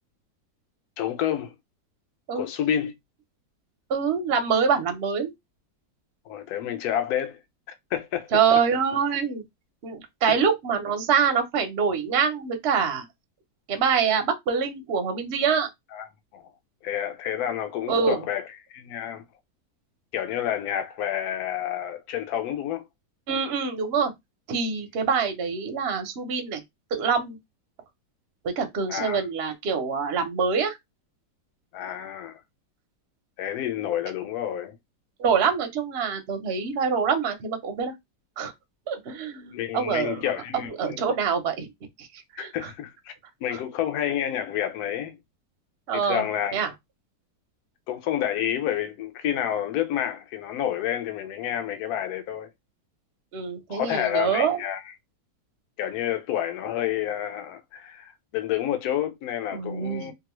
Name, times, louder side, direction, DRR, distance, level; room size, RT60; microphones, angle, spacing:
voice 1, 1.0-1.5 2.3-2.9 6.3-7.4 7.9-8.3 10.3-10.4 15.9-16.1 16.3-16.4 16.8-18.4 18.7-19.2 20.1-22.9 28.9-29.2 31.7-32.4 33.4-34.8 39.5-41.0 42.4-43.1 43.4-45.2 45.9-46.5 47.9-52.5 53.7-54.8 55.8-60.1, left 10 dB, 70° left, 1.1 m, -29 dB
voice 2, 3.9-5.3 8.3-9.4 9.8-13.1 13.7-15.7 17.9-18.2 23.3-24.1 24.5-26.6 26.9-27.4 28.4-30.8 35.2-37.9 38.4-38.5 38.9-40.2 40.8-41.7 42.0-42.1 42.3-42.7 45.9-46.3 46.5-46.7 53.3-54.6 59.5-60.1, right 6 dB, 60° right, 0.7 m, -25 dB
2.9 x 2.4 x 3.0 m
omnidirectional pair, 1.9 m